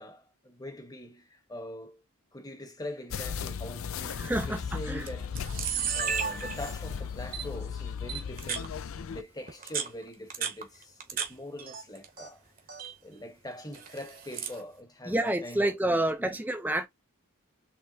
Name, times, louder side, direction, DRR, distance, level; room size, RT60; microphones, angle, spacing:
voice 1, 0.0-2.0 2.3-5.4 5.9-8.8 9.1-12.5 13.0-16.4, left 1 dB, 15° left, 1.1 m, -43 dB
sound 1, 3.1-9.2, left 7 dB, 70° left, 0.5 m, -37 dB
voice 2, 4.2-5.1 15.1-16.9, right 1 dB, 10° right, 0.5 m, -28 dB
Camera, 4.2-4.4 5.1-5.2 5.3-6.9 7.3-7.4 8.1-8.7 9.5-11.3 11.6-12.3 12.6-12.9 13.7-14.6, right 7 dB, 40° right, 1.1 m, -34 dB
4.5 x 3.4 x 2.7 m
head